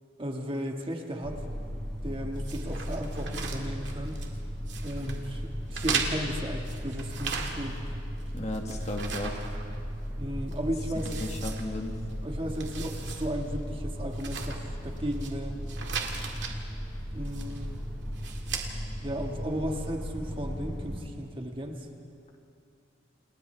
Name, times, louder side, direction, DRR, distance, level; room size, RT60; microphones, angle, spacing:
voice 1, 0.2-1.4 2.0-4.2 4.8-7.8 10.2-11.2 12.2-15.6 17.1-17.8 19.0-21.8, equal, 30° right, 2 dB, 1.6 m, -35 dB
sound 1, 1.2-21.0, equal, 5° left, 4.0 m, -36 dB
sound 2, 2.4-4.4 4.7-5.2 5.7-7.9 8.2-10.1 10.5-10.6 11.0-12.1 12.5-13.3 13.6-13.7 14.1-15.3 15.7-16.5 17.2-17.7 18.1-18.7, right 6 dB, 65° right, 2.2 m, -37 dB
voice 2, 8.3-9.4 10.9-12.0, left 1 dB, 35° left, 2 dB, 1.7 m, -35 dB
29.0 x 28.5 x 3.3 m, 2.6 s
head